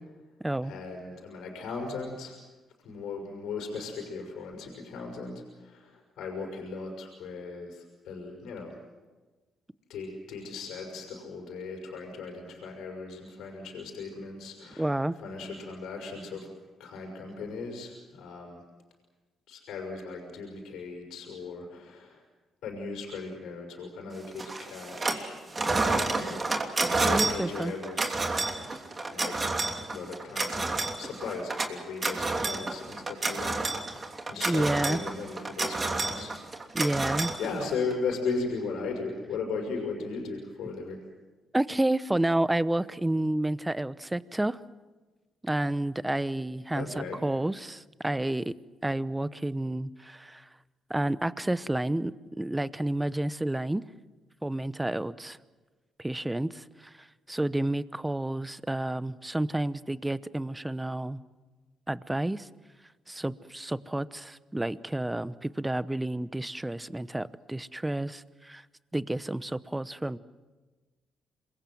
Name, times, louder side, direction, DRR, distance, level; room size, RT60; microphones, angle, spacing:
voice 1, 0.6-2.4 2.8-8.8 9.9-14.9 15.2-16.5 16.8-18.6 19.5-22.2 22.6-26.5 27.0-28.3 29.1-29.4 29.9-30.6 31.0-36.3 37.4-41.0 46.7-47.2, left 4 dB, 80° left, 1 dB, 6.1 m, -37 dB
voice 2, 14.8-15.2 27.0-27.7 34.4-35.0 36.7-37.3 41.5-44.6 45.4-48.5 48.8-50.4 50.9-52.1 52.4-53.8 54.4-55.4 56.0-56.6 57.3-61.2 61.9-62.5 63.1-68.6 68.9-70.2, right 1 dB, 10° right, 16 dB, 0.9 m, -30 dB
sound 1, 24.4-25.3 25.5-37.9, right 3 dB, 30° right, 3.0 m, -30 dB
27.0 x 22.5 x 7.8 m, 1.3 s
cardioid pair, 90°, 0 cm